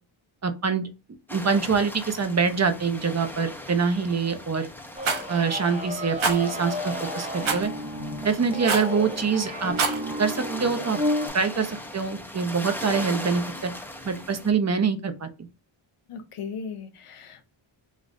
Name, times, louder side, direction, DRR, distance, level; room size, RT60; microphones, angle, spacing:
voice 1, 0.4-0.9 1.3-4.7 5.3-7.7 8.2-9.7 10.2-11.0 11.3-13.7 14.0-15.3, right 5 dB, 30° right, 7 dB, 0.8 m, -25 dB
sound 1, 1.3-14.5, left 1 dB, 5° left, 0.8 m, -39 dB
sound 2, 5.0-11.3, left 1 dB, 15° right, 1.1 m, -32 dB
Rattle, 5.0-5.2 6.2-6.4 7.4-7.7 8.6-8.9 9.6-10.0, right 4 dB, 70° right, 1.1 m, -24 dB
voice 2, 16.1-17.5, left 6 dB, 85° left, 9 dB, 0.8 m, -37 dB
5.1 x 2.5 x 2.6 m, 0.30 s
cardioid pair, 70°, 50 cm